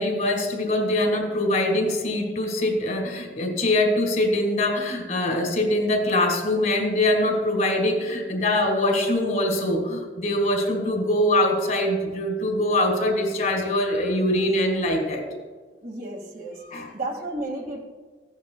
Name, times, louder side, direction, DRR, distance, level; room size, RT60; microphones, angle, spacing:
voice 1, 0.0-15.2 16.7-16.9, left 1 dB, 45° left, 2 dB, 1.8 m, -23 dB
voice 2, 15.8-16.6 16.9-17.8, right 2 dB, 50° right, 0 dB, 1.9 m, -32 dB
15.5 x 10.5 x 2.2 m, 1.4 s
head